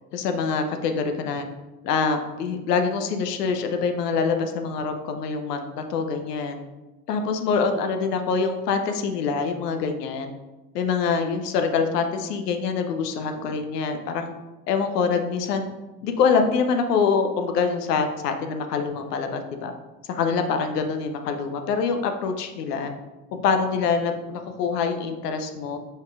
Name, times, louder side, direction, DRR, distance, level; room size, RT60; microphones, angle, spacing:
voice 1, 0.1-1.5 1.8-6.6 7.1-10.3 10.7-14.3 14.7-15.7 16.0-19.7 20.1-22.9 23.3-25.8, left 5 dB, 80° left, 6 dB, 0.6 m, -25 dB
4.9 x 4.3 x 2.4 m, 1.1 s
figure-of-eight pair, 50°, 47 cm